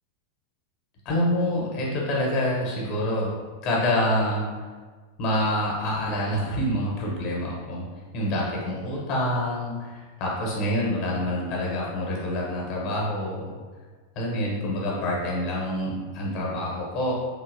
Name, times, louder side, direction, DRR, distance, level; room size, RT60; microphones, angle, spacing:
voice 1, 1.0-3.3 3.6-4.5 5.2-7.9 8.1-13.5 14.1-17.1, left 1 dB, 40° left, -3 dB, 1.0 m, -26 dB
3.7 x 2.9 x 2.6 m, 1.4 s
figure-of-eight pair, 90°, 0 cm